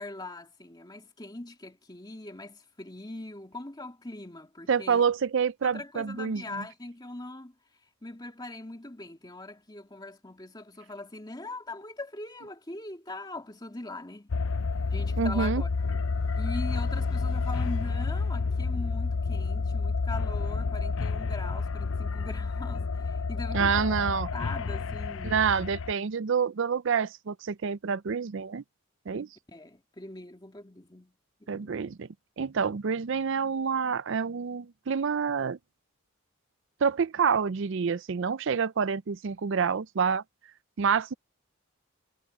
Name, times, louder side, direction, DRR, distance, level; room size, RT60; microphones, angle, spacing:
voice 1, 0.0-5.0 5.6-7.5 8.0-14.3 14.9-15.7 16.3-23.8 24.3-25.4 29.5-31.1 31.4-31.8, left 2 dB, 20° left, 2.4 m, -41 dB
voice 2, 4.7-6.6 15.2-15.6 23.5-24.3 25.2-28.6 29.1-29.3 31.5-32.1 32.4-35.6 36.8-40.2 40.8-41.1, right 6 dB, 60° right, 0.5 m, -27 dB
sound 1, 14.3-25.9, left 4 dB, 65° left, 0.6 m, -30 dB
head